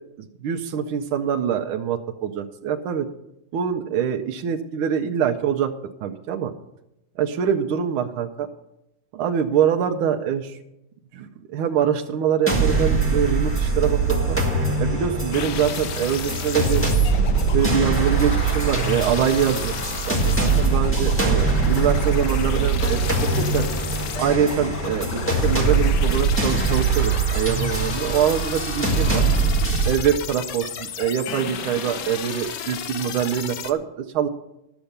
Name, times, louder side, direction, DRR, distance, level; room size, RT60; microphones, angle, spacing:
voice 1, 0.2-3.1 3.5-5.7 6.0-6.5 7.2-8.5 9.1-10.6 11.1-14.4 14.8-16.8 17.5-23.0 23.3-23.6 24.2-29.2 29.8-34.3, right 8 dB, 85° right, 4 dB, 1.5 m, -24 dB
sound 1, 12.5-29.9, right 4 dB, 5° left, 1.8 m, -22 dB
sound 2, 15.3-33.7, left 7 dB, 65° left, 1.3 m, -33 dB
12.5 x 7.0 x 6.6 m, 0.88 s
omnidirectional pair, 2.2 m